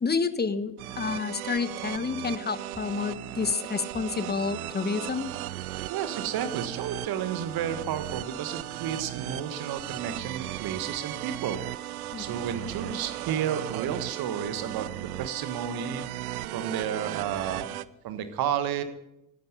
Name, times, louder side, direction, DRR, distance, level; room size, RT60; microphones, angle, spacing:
voice 1, 0.0-5.3 12.1-12.4, left 5 dB, 20° left, 13 dB, 1.1 m, -29 dB
sound 1, 0.8-17.8, right 15 dB, 75° right, 0.5 m, -36 dB
voice 2, 5.8-17.7 18.0-18.8, right 8 dB, 55° right, 10 dB, 1.6 m, -32 dB
17.0 x 11.5 x 5.5 m, 0.86 s
figure-of-eight pair, 45°, 44 cm